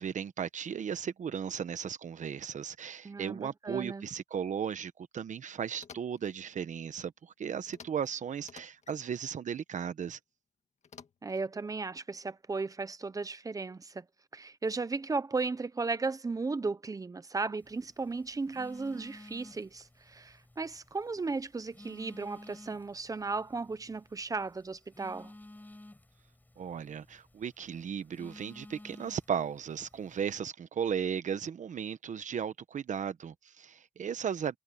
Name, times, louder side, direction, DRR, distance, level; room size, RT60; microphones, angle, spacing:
voice 1, 0.0-10.2 26.6-34.6, right 7 dB, 90° right, 1.0 m, -36 dB
voice 2, 3.0-4.1 11.2-14.0 14.3-25.3, right 3 dB, 30° right, 0.8 m, -35 dB
sound 1, 5.7-6.3 7.7-8.1 8.4-9.0 10.8-11.5, left 6 dB, 65° left, 1.8 m, -53 dB
Telephone, 17.6-30.4, left 1 dB, 15° left, 6.9 m, -54 dB
wide cardioid pair, 150°, 12 cm